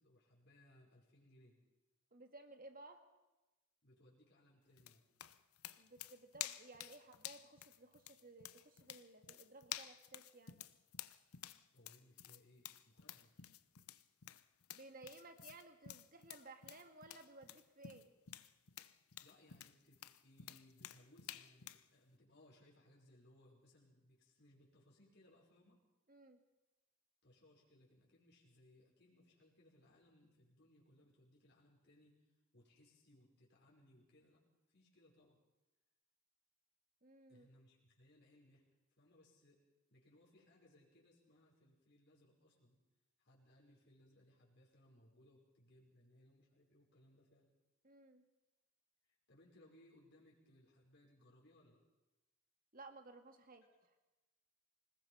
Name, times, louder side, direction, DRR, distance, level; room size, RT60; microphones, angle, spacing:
voice 1, 0.0-1.6 3.8-5.0 11.7-13.4 19.2-25.8 27.2-34.4 34.7-35.4 37.3-38.6 39.0-39.6 39.9-42.8 43.2-47.5 49.0-51.8, left 1 dB, 50° left, -4 dB, 5.7 m, -67 dB
voice 2, 2.1-3.0 5.8-10.6 14.7-18.1 26.1-26.4 37.0-37.5 47.8-48.2 52.7-53.9, right 2 dB, 40° right, 6 dB, 2.2 m, -58 dB
sound 1, 4.8-21.9, left 12 dB, 85° left, 0.9 m, -51 dB
26.0 x 20.0 x 5.8 m, 1.1 s
head